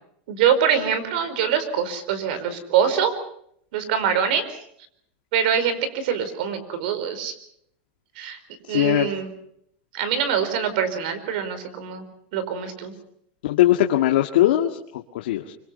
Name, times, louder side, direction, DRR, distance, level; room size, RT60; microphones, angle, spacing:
voice 1, 0.3-3.1 3.7-4.4 5.3-7.3 8.2-8.4 8.7-9.3 9.9-12.0 12.3-12.9, right 8 dB, 65° right, 12 dB, 4.8 m, -24 dB
voice 2, 8.7-9.1 13.4-15.5, left 13 dB, 90° left, 2 dB, 1.9 m, -20 dB
25.5 x 25.0 x 5.7 m, 0.70 s
supercardioid pair, 165°, 5 cm